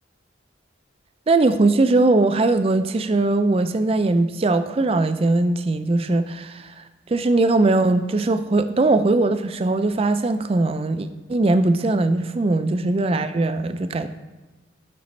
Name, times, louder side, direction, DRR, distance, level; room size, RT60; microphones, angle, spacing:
voice 1, 1.3-14.1, right 2 dB, 30° right, 10 dB, 0.3 m, -20 dB
11.0 x 6.0 x 3.2 m, 1.2 s
head